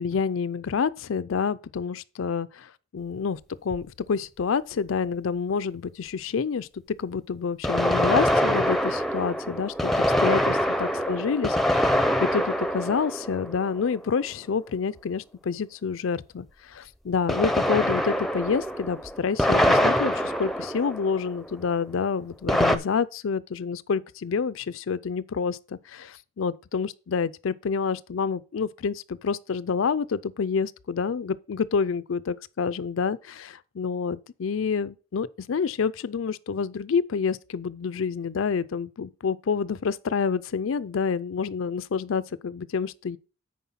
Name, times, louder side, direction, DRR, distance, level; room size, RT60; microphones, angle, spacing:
voice 1, 0.0-6.7 7.0-43.2, left 6 dB, 80° left, 0.5 m, -28 dB
sound 1, 3.7-3.8 7.6-14.1 17.3-21.5 22.5-22.8, equal, ahead, 0.6 m, -24 dB
9.4 x 4.4 x 5.7 m
head